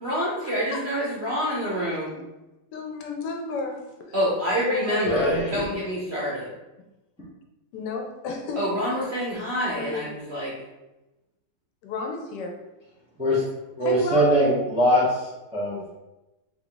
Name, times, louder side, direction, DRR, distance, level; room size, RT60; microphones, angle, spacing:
voice 1, 0.0-2.2 4.1-6.5 8.6-10.5, equal, 55° right, -6 dB, 0.7 m, -27 dB
voice 2, 2.7-4.2 4.7-5.4 7.7-9.0 9.7-10.1 11.8-12.6 13.8-14.3, left 3 dB, 75° left, 2 dB, 1.2 m, -32 dB
voice 3, 5.0-5.6 13.2-13.4 13.8-15.0 15.5-15.8, equal, 5° right, -7 dB, 0.5 m, -21 dB
3.4 x 2.4 x 3.8 m, 1.0 s
omnidirectional pair, 1.9 m